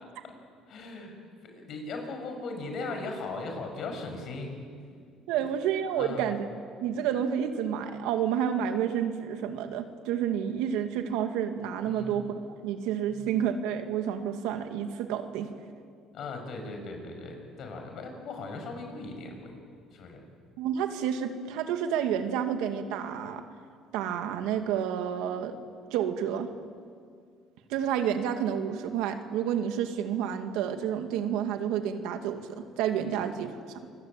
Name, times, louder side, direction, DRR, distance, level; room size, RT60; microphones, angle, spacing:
voice 1, 0.7-1.2 1.4-4.5 5.4-5.5 6.0-6.2 11.9-12.2 13.1-13.3 16.1-19.6 19.9-20.2 33.0-33.1, left 3 dB, 55° left, 4 dB, 6.9 m, -38 dB
voice 2, 5.3-6.5 6.8-15.5 20.6-23.4 23.9-25.6 25.9-26.5 27.7-33.6, right 9 dB, 90° right, 6 dB, 2.3 m, -30 dB
28.0 x 22.0 x 9.1 m, 2.1 s
cardioid pair, 125°, 0 cm